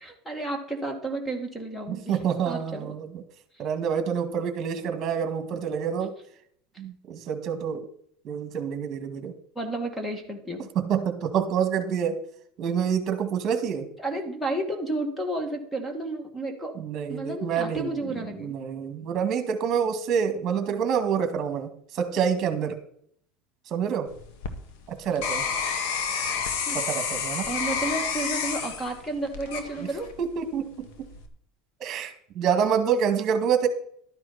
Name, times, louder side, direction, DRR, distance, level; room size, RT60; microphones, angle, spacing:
voice 1, 0.0-2.2 2.5-2.9 9.6-10.7 14.0-16.7 17.1-18.6 26.7-26.8 27.5-30.1, right 2 dB, 10° left, 5 dB, 2.1 m, -32 dB
voice 2, 1.9-3.1 3.6-6.1 6.8-7.8 8.2-9.3 10.8-12.2 12.6-13.9 16.8-17.9 18.4-22.8 23.7-24.1 24.9-25.4 26.7-27.4 30.2-30.7 31.0-31.1 31.8-33.7, right 7 dB, 40° right, 7 dB, 2.1 m, -27 dB
sound 1, 24.1-30.3 30.8-31.3, left 6 dB, 75° left, 1.7 m, -30 dB
12.5 x 9.7 x 4.3 m, 0.64 s
supercardioid pair, 135°, 0 cm